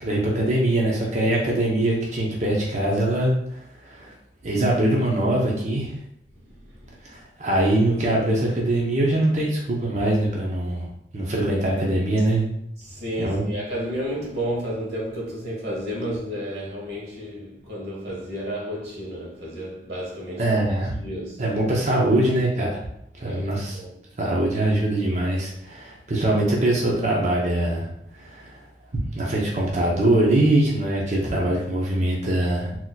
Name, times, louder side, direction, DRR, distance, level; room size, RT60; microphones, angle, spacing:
voice 1, 0.0-4.1 4.4-5.9 7.0-12.5 13.2-13.6 20.4-20.9 21.4-22.7 23.2-23.8 24.2-28.6 29.1-32.8, right 1 dB, 40° right, 0.6 m, -23 dB
voice 2, 6.3-7.0 12.8-20.6 21.0-21.6 23.2-24.0, equal, 65° right, 1.3 m, -32 dB
3.9 x 2.9 x 2.2 m
head